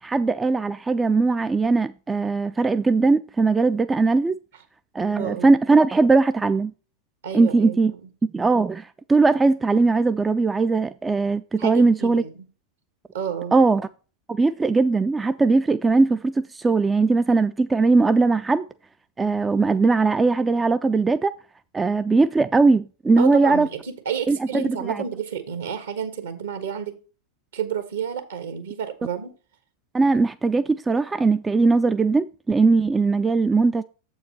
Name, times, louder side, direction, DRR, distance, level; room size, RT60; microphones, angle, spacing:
voice 1, 0.0-4.3 4.9-6.7 7.3-7.9 8.3-12.2 13.5-13.9 14.3-18.6 19.2-21.3 21.7-23.7 24.3-25.0 29.9-33.8, right 3 dB, 10° right, 0.3 m, -20 dB
voice 2, 5.1-5.5 7.2-8.0 11.6-12.4 13.1-13.5 23.2-27.0 27.5-29.3, right 8 dB, 65° right, 1.4 m, -30 dB
7.6 x 4.6 x 5.5 m
figure-of-eight pair, 90°, 0 cm